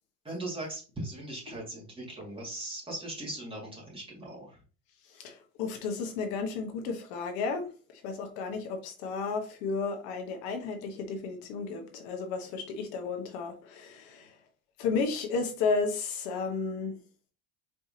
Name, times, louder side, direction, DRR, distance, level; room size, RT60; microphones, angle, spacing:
voice 1, 0.2-4.6, right 1 dB, 10° right, 2.1 m, -39 dB
voice 2, 5.1-14.4 14.8-17.0, left 4 dB, 65° left, 1.1 m, -33 dB
4.4 x 3.4 x 2.7 m
supercardioid pair, 120°, 42 cm